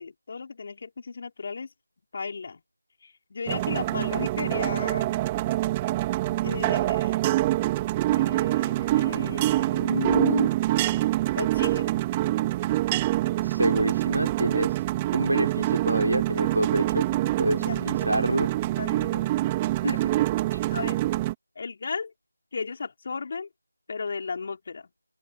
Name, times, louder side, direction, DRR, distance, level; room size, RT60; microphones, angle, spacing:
voice 1, 0.0-1.7 2.1-2.6 3.0-5.1 6.4-7.2 8.1-10.5 10.8-11.0 11.3-11.9 17.5-18.5 18.8-19.3 19.8-20.0 20.4-21.0 21.5-22.1 22.5-23.5 23.9-24.9, left 4 dB, 35° left, 5.2 m, -34 dB
sound 1, 3.5-21.3, right 16 dB, 15° right, 3.7 m, -25 dB
voice 2, 13.4-14.8 15.1-17.1 17.4-18.5 19.8-20.0 20.5-20.6, right 1 dB, 80° right, 4.4 m, -27 dB
open air
figure-of-eight pair, 165°, 0 cm